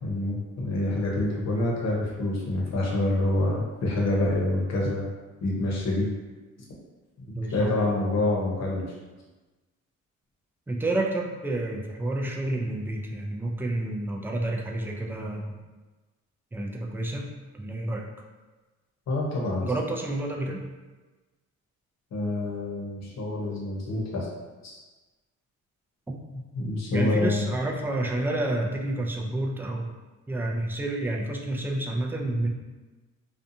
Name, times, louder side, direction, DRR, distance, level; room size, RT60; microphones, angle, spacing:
voice 1, 0.0-5.0 5.4-6.1 7.2-8.9 19.1-19.7 22.1-24.3 24.6-24.8 26.5-27.5, left 2 dB, 60° left, -3 dB, 0.9 m, -27 dB
voice 2, 7.3-8.0 10.7-15.5 16.5-17.3 17.5-18.1 19.6-20.6 26.9-29.9 30.3-32.5, right 1 dB, 5° right, -1 dB, 0.3 m, -29 dB
2.6 x 2.3 x 2.6 m, 1.2 s
cardioid pair, 90°, 30 cm